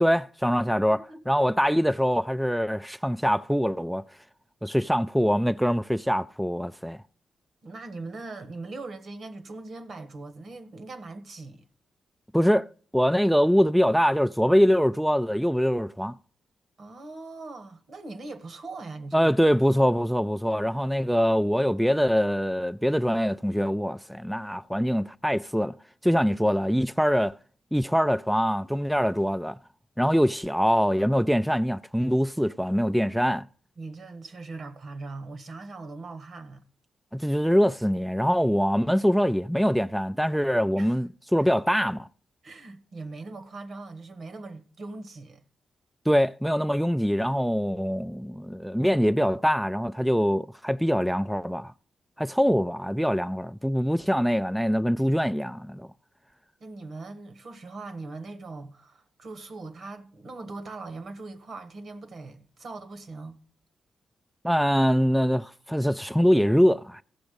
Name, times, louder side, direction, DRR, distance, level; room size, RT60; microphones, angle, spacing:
voice 1, 0.0-1.0 1.3-4.0 4.6-7.0 12.3-16.1 19.1-25.7 26.0-27.4 27.7-29.6 30.0-33.4 37.1-42.1 46.1-51.7 52.2-55.9 64.4-67.0, equal, ahead, 0.4 m, -23 dB
voice 2, 0.9-1.2 7.6-11.6 16.8-19.3 33.8-36.6 40.7-41.0 42.4-45.4 56.6-63.4, right 3 dB, 60° right, 1.3 m, -40 dB
14.5 x 6.1 x 5.1 m
supercardioid pair, 45°, 0 cm